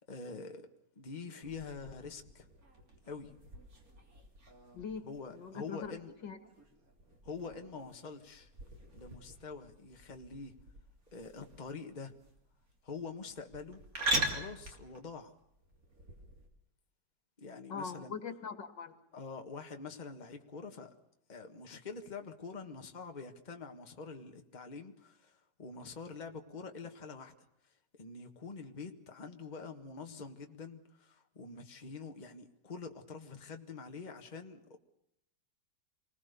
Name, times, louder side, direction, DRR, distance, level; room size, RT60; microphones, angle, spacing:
voice 1, 0.1-0.7 1.0-2.5 3.0-3.3 5.0-6.1 7.2-8.5 8.9-10.5 11.1-12.1 12.8-13.8 14.2-15.3 17.4-18.2 19.1-20.9 21.3-27.3 28.0-34.8, left 4 dB, 25° left, 1.6 m, -46 dB
sound 1, 1.4-16.5, right 2 dB, 50° right, 3.5 m, -42 dB
voice 2, 4.7-5.0 5.3-5.9 6.2-6.4 17.7-19.0, left 6 dB, 80° left, 2.7 m, -41 dB
27.5 x 20.5 x 6.9 m
omnidirectional pair, 1.9 m